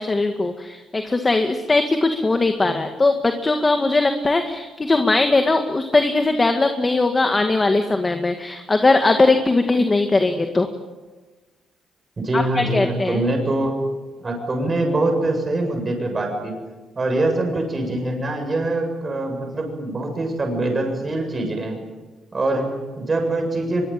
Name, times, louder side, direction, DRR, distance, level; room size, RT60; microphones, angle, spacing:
voice 1, 0.0-10.7 12.3-13.2, left 3 dB, 25° left, 6 dB, 2.0 m, -19 dB
voice 2, 12.2-13.8 14.2-16.5 17.0-21.8 22.3-23.9, right 2 dB, 30° right, 3 dB, 7.6 m, -23 dB
23.5 x 23.0 x 9.2 m, 1.3 s
cardioid pair, 90°, 0 cm